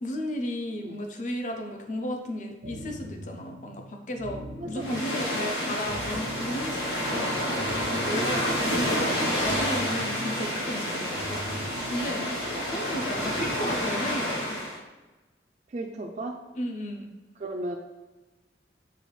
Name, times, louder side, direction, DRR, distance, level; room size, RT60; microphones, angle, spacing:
voice 1, 0.0-9.0 9.4-12.2 12.7-14.6 16.5-17.1, left 1 dB, 45° left, 3 dB, 0.5 m, -34 dB
sound 1, 2.6-12.6, equal, 80° right, 0.7 m, -41 dB
voice 2, 4.6-5.4 8.3-9.0 13.4-13.5 15.7-16.4 17.4-17.8, right 2 dB, 40° right, 1 dB, 0.3 m, -36 dB
sound 2, 4.8-14.8, equal, 85° left, 1.2 m, -29 dB
6.7 x 2.4 x 3.2 m, 1.2 s
head